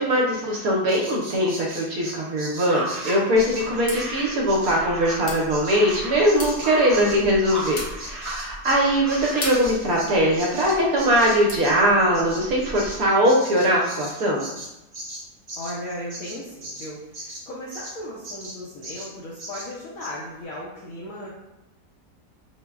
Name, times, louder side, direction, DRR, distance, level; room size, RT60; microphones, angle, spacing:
voice 1, 0.0-14.5, equal, 70° right, -2 dB, 1.0 m, -21 dB
Bird vocalization bird call bird song, 0.9-8.8 9.1-18.0 18.2-18.6 18.8-19.1 19.4-19.7 20.0-20.1, right 1 dB, 45° right, 0.5 m, -38 dB
sound 1, 2.6-8.4 8.7-9.6, right 1 dB, ahead, 0.8 m, -35 dB
sound 2, 3.3-13.1, left 1 dB, 45° left, 0.6 m, -39 dB
voice 2, 15.6-21.3, left 1 dB, 70° left, -6 dB, 0.9 m, -36 dB
5.0 x 2.0 x 2.3 m, 0.95 s
omnidirectional pair, 1.8 m